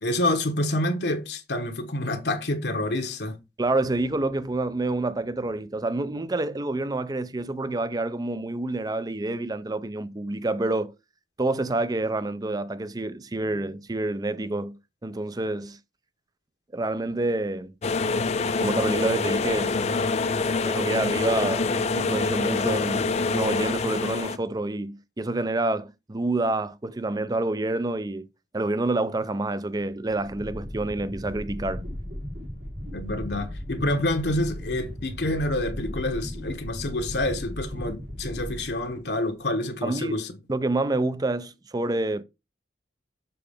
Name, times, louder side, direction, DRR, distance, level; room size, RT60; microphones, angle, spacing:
voice 1, 0.0-3.4 32.9-40.3, left 1 dB, 70° left, 1.1 m, -27 dB
voice 2, 3.6-10.9 11.4-15.8 16.7-17.7 18.6-19.8 20.6-28.3 28.5-31.8 39.8-40.2 40.5-42.2, right 2 dB, 20° right, 0.5 m, -28 dB
sound 1, 17.8-24.4, left 4 dB, 40° left, 0.4 m, -25 dB
sound 2, 29.9-39.3, equal, 70° right, 3.1 m, -36 dB
6.9 x 4.9 x 3.5 m
head